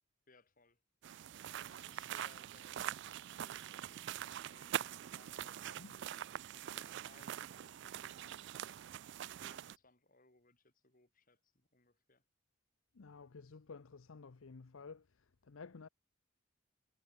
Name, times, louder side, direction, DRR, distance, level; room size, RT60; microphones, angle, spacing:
voice 1, 0.3-0.8 1.6-4.0 4.5-6.1 6.5-8.7 9.4-12.2, left 3 dB, 40° left, 4.5 m, -66 dB
sound 1, 1.0-9.8, right 10 dB, 60° right, 0.3 m, -44 dB
voice 2, 12.9-15.9, left 4 dB, 85° left, 0.7 m, -53 dB
head